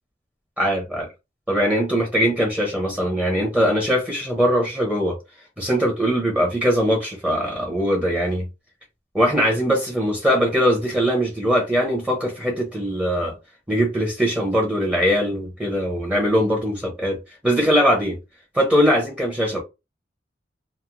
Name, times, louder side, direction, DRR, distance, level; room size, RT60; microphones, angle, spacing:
voice 1, 0.6-1.1 1.5-5.2 5.6-8.4 9.1-13.3 13.7-18.2 18.5-19.6, equal, 5° right, 0.6 m, -21 dB
2.9 x 2.0 x 2.5 m
head